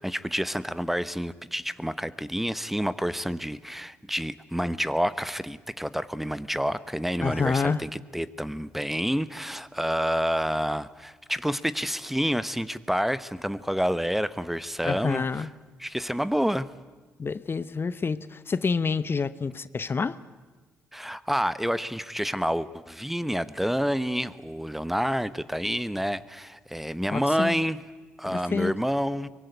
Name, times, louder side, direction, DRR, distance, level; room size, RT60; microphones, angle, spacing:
voice 1, 0.0-15.2 15.8-16.7 20.9-27.8 28.2-29.3, equal, 5° right, 17 dB, 1.1 m, -28 dB
voice 2, 7.2-7.8 14.8-15.5 17.2-20.2 27.1-27.6 28.2-28.7, left 5 dB, 40° left, 16 dB, 0.9 m, -28 dB
23.5 x 21.0 x 9.5 m, 1.3 s
hypercardioid pair, 45°, 6 cm